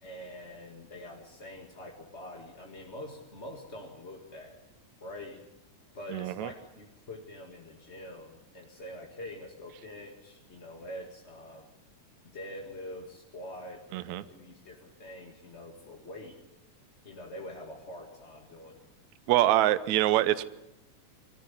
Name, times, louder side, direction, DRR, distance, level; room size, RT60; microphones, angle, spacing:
voice 1, 0.0-4.6 5.0-5.4 5.9-11.7 12.2-16.4 17.0-18.8, left 1 dB, 25° left, 1 dB, 1.7 m, -45 dB
voice 2, 6.1-6.5 13.9-14.2 19.3-20.4, right 14 dB, 70° right, 13 dB, 2.1 m, -25 dB
23.5 x 14.0 x 9.9 m, 0.90 s
omnidirectional pair, 3.8 m